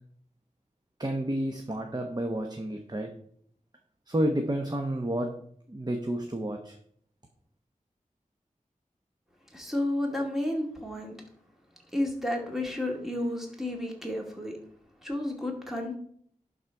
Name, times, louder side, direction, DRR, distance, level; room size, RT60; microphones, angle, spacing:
voice 1, 1.0-3.1 4.1-5.3 5.7-6.7, right 1 dB, 30° right, 4 dB, 1.0 m, -30 dB
voice 2, 9.5-11.1 11.9-14.5 15.0-16.0, left 1 dB, ahead, 0 dB, 2.2 m, -31 dB
11.5 x 4.1 x 4.6 m, 0.63 s
wide cardioid pair, 65°, 14 cm